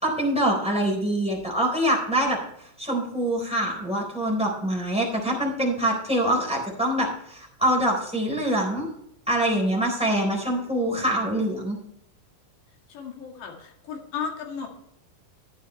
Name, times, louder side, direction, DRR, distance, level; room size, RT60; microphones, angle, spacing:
voice 1, 0.0-2.4 2.8-8.9 9.3-11.8, right 1 dB, ahead, -1 dB, 2.7 m, -24 dB
voice 2, 12.9-14.7, left 6 dB, 60° left, 1 dB, 3.9 m, -35 dB
14.0 x 9.8 x 3.2 m, 0.75 s
omnidirectional pair, 6.0 m